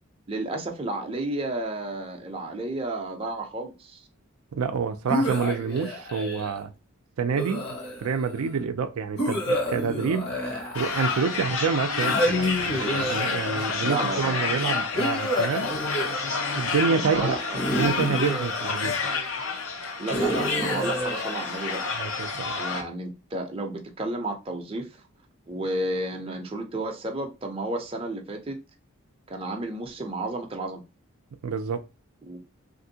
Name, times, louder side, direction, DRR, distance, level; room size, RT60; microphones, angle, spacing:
voice 1, 0.3-4.0 13.8-14.9 16.9-17.6 20.0-21.8 22.6-25.0 25.5-28.6 29.3-30.8 32.2-32.4, right 2 dB, 25° right, 0.5 m, -32 dB
voice 2, 4.5-6.7 7.2-7.7 8.0-10.4 10.7-15.7 16.5-17.3 17.8-19.0 22.0-22.6 31.4-31.8, right 5 dB, 75° right, 0.4 m, -27 dB
sound 1, 5.1-6.6 7.3-8.3 9.2-11.4 12.0-13.8 15.0-16.7 17.5-19.2 20.1-22.1, equal, 45° left, 1.0 m, -29 dB
sound 2, 10.7-22.8, left 4 dB, 65° left, 0.6 m, -29 dB
3.5 x 2.6 x 2.7 m
head